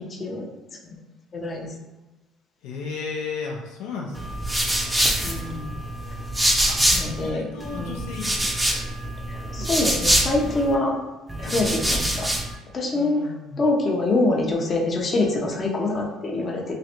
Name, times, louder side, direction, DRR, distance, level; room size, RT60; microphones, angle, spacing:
voice 1, 0.1-0.5 0.8-1.0 1.3-1.7 5.2-5.7 6.9-8.0 9.3-11.0 11.4-12.3 12.7-16.7, left 2 dB, 35° left, -1 dB, 0.6 m, -25 dB
voice 2, 2.6-4.4 6.7-6.8 7.2-8.5 11.4-11.6 12.9-13.6, left 4 dB, 85° left, -1 dB, 0.5 m, -34 dB
sound 1, 4.1-7.3 7.6-10.7 11.3-12.5, right 1 dB, 10° right, 0.5 m, -24 dB
3.1 x 2.5 x 2.8 m, 1.1 s
cardioid pair, 95°, 0 cm